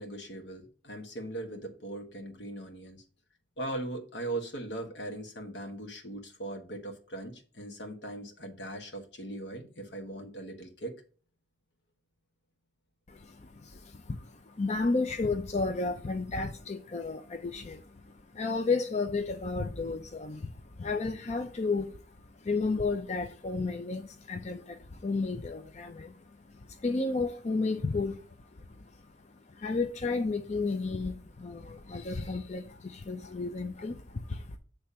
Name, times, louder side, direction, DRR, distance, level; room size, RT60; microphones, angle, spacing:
voice 1, 0.0-3.0 3.6-10.9, right 1 dB, 75° left, 1.5 m, -39 dB
voice 2, 13.1-34.6, left 3 dB, 40° left, 0.5 m, -33 dB
8.4 x 3.4 x 5.6 m
head